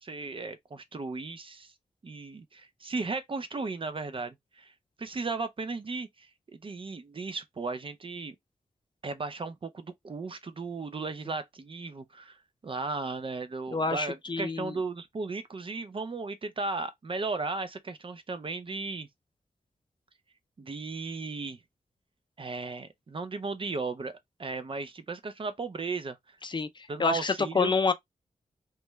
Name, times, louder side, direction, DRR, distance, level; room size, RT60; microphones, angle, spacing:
voice 1, 0.0-1.7 2.0-4.7 5.0-8.3 9.0-12.4 12.6-19.1 20.6-21.6 22.4-24.1 24.4-26.2 26.9-27.7, right 3 dB, 40° right, 0.5 m, -35 dB
voice 2, 13.7-14.7 26.4-27.9, left 4 dB, 35° left, 0.5 m, -28 dB
3.2 x 2.3 x 3.1 m
wide cardioid pair, 85°, 13 cm